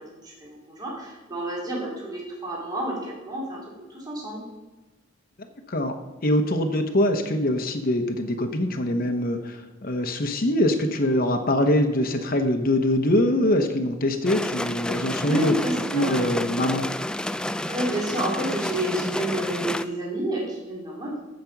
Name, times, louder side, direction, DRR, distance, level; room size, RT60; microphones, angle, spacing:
voice 1, 0.0-3.6 3.9-4.4 14.9-16.3 17.7-21.1, right 1 dB, 20° right, -5 dB, 2.9 m, -29 dB
voice 2, 6.2-15.6 15.9-16.9, left 1 dB, 50° left, 5 dB, 1.0 m, -23 dB
sound 1, 14.2-19.8, left 1 dB, 5° left, 0.3 m, -30 dB
15.0 x 5.3 x 6.0 m, 1.2 s
head